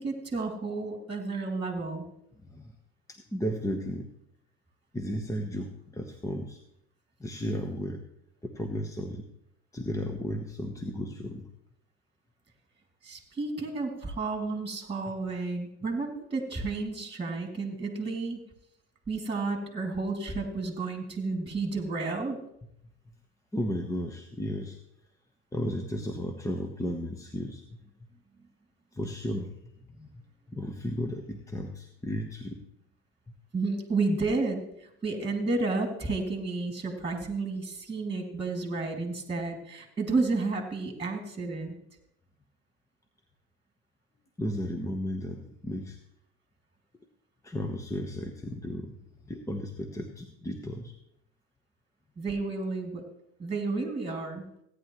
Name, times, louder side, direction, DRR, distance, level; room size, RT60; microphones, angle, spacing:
voice 1, 0.0-2.1 13.0-18.4 19.1-22.4 33.5-41.8 52.2-53.0 53.4-54.4, right 3 dB, 15° right, 3 dB, 2.6 m, -31 dB
voice 2, 2.4-2.7 3.1-4.1 4.9-6.6 7.2-8.0 8.4-9.2 9.7-11.5 23.5-24.8 25.5-27.6 28.9-29.5 30.0-30.1 30.5-32.6 44.4-46.0 47.4-48.9 49.2-50.9, equal, 10° left, 5 dB, 1.1 m, -34 dB
16.5 x 9.9 x 3.1 m, 0.75 s
hypercardioid pair, 85°, 35 cm